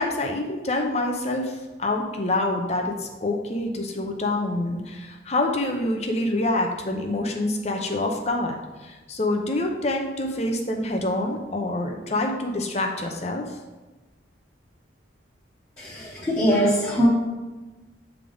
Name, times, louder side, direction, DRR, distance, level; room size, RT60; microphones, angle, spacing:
voice 1, 0.0-13.6, left 2 dB, 35° left, 2 dB, 0.7 m, -26 dB
voice 2, 15.8-17.1, equal, 15° left, -9 dB, 1.1 m, -22 dB
8.2 x 3.5 x 3.8 m, 1.2 s
head